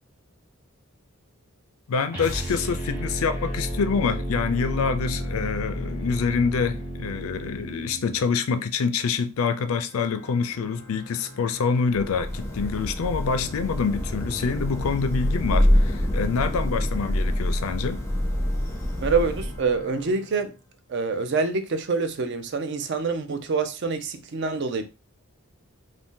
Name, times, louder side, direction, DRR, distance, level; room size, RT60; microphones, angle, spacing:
voice 1, 1.9-18.0, left 5 dB, 75° left, 0.4 m, -26 dB
sound 1, 2.1-8.3, equal, 10° right, 0.9 m, -32 dB
Organ, 9.9-21.0, equal, 85° right, 1.4 m, -47 dB
Thunder / Rain, 11.9-19.9, equal, 10° left, 0.5 m, -26 dB
voice 2, 19.0-20.5 20.9-24.8, right 4 dB, 50° right, 0.4 m, -26 dB
2.7 x 2.5 x 3.6 m
head